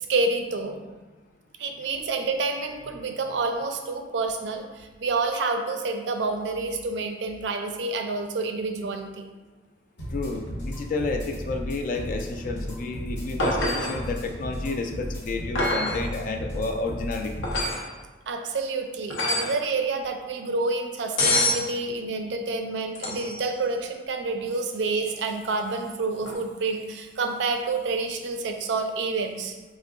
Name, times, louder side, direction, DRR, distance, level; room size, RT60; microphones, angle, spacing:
voice 1, 0.1-1.0 1.6-9.2 18.3-29.5, right 3 dB, 70° right, 5 dB, 0.4 m, -28 dB
sound 1, 10.0-17.7, equal, 70° left, 1.1 m, -35 dB
voice 2, 10.1-17.5, left 3 dB, 45° left, 4 dB, 0.3 m, -31 dB
sound 2, 13.4-14.0 15.5-16.0 17.4-17.9 19.1-19.6 21.2-21.6 22.9-23.4 26.2-26.3, left 1 dB, 90° left, 0.7 m, -25 dB
3.6 x 2.0 x 3.7 m, 1.2 s
head